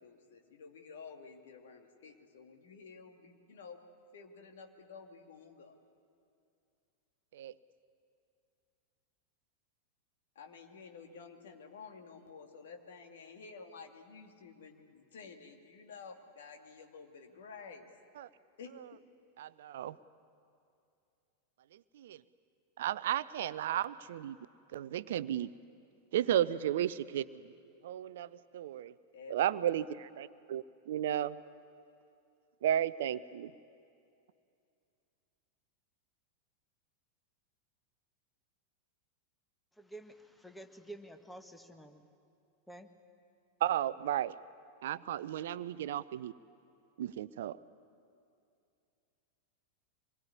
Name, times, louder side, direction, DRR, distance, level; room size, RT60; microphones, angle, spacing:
voice 1, 0.0-3.8 4.1-5.8 10.4-17.9 18.6-19.0 29.1-29.7, left 5 dB, 60° left, 4 dB, 2.4 m, -51 dB
voice 2, 19.4-20.0 21.7-22.2 22.8-24.4 24.7-25.5 26.1-27.3 27.8-28.9 29.3-31.4 32.6-33.5 43.6-44.4 44.8-46.3 47.0-47.6, right 11 dB, 55° right, 17 dB, 0.6 m, -34 dB
voice 3, 39.8-42.0 42.7-42.9, right 1 dB, 5° left, 6 dB, 1.6 m, -50 dB
25.5 x 21.0 x 9.8 m, 2.5 s
figure-of-eight pair, 90°, 0 cm